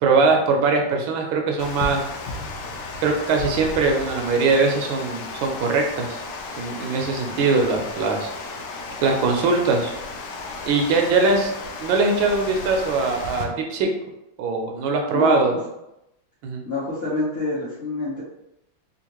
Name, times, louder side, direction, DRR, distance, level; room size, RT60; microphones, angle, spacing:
voice 1, 0.0-2.0 3.0-6.2 6.6-8.3 9.0-9.9 10.7-11.5 11.8-13.9 14.4-15.5 16.4-16.6, right 4 dB, 85° right, 2 dB, 1.4 m, -21 dB
Water, 1.6-13.4, left 3 dB, 70° left, 1.1 m, -34 dB
voice 2, 15.1-15.4 16.7-18.2, left 2 dB, 50° left, -8 dB, 0.7 m, -26 dB
3.6 x 2.5 x 2.9 m, 0.87 s
omnidirectional pair, 2.1 m